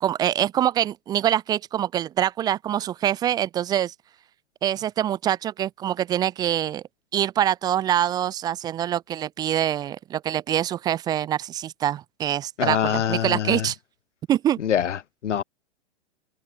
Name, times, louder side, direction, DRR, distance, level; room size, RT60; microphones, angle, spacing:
voice 1, 0.0-3.9 4.6-6.8 7.1-13.8 14.3-14.6, right 11 dB, 10° right, 0.3 m, -25 dB
voice 2, 12.6-13.7 14.6-15.4, left 9 dB, 75° left, 2.3 m, -25 dB
open air
hypercardioid pair, 115°, 36 cm